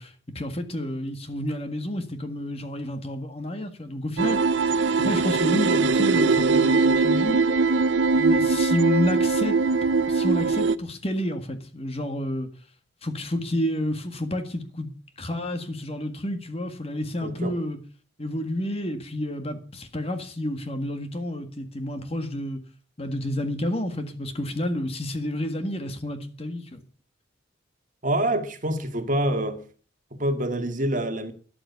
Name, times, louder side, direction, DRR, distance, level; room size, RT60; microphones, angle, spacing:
voice 1, 0.0-4.5 5.0-7.5 8.1-9.6 10.1-12.5 13.0-14.9 15.2-17.8 18.2-22.6 23.0-26.8, left 1 dB, 30° left, 1.8 m, -30 dB
sound 1, 4.2-10.8, right 4 dB, 70° right, 0.7 m, -21 dB
voice 2, 17.2-17.6 28.0-29.6 30.1-31.3, right 1 dB, 45° right, 2.0 m, -26 dB
13.0 x 11.5 x 6.9 m
head